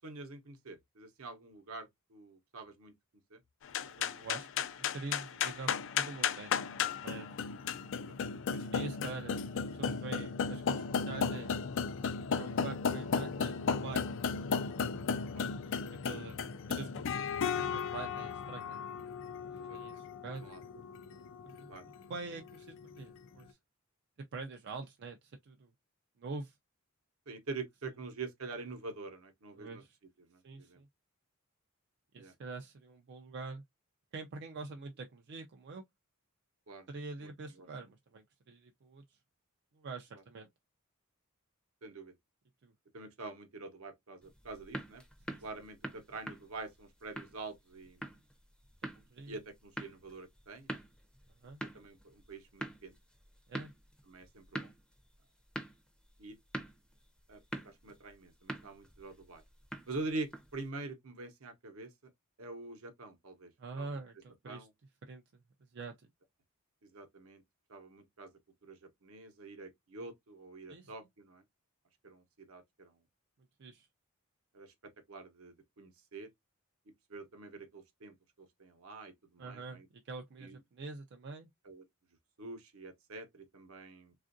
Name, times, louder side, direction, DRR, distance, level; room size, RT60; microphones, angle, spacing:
voice 1, 0.0-2.9 3.3-3.4 8.2-8.4 15.1-15.8 19.5-20.0 20.4-20.6 20.9-21.0 21.7-21.9 27.3-29.8 30.2-30.8 32.2-32.3 36.7-36.9 37.2-37.3 37.6-37.7 40.1-40.2 41.8-42.1 42.9-45.0 45.4-48.2 49.3-50.8 51.7-52.9 54.1-54.7 56.2-56.4 57.3-59.4 59.9-62.1 62.4-64.0 64.4-64.7 66.8-67.4 67.7-68.3 68.6-71.4 72.0-73.0 74.5-74.7 75.1-76.3 77.1-79.9 80.4-80.6 81.6-81.8 82.4-84.1, right 3 dB, 70° right, 0.8 m, -46 dB
sound 1, 3.6-23.2, left 6 dB, 60° left, 0.4 m, -35 dB
voice 2, 3.8-6.5 7.0-7.4 8.5-11.5 12.4-14.4 16.0-18.8 19.6-20.5 21.4-23.6 24.3-25.7 26.2-26.5 29.6-29.9 30.4-30.9 32.1-33.6 34.1-35.8 36.9-39.0 39.8-40.5 42.6-42.7 45.3-45.4 49.1-49.4 51.4-51.6 53.5-53.7 63.6-64.7 65.1-65.2 65.7-66.1 70.7-70.9 73.6-73.9 79.4-81.5, right 3 dB, 50° right, 0.4 m, -45 dB
sound 2, 44.2-60.7, right 1 dB, 5° left, 0.5 m, -47 dB
3.4 x 2.4 x 2.5 m
head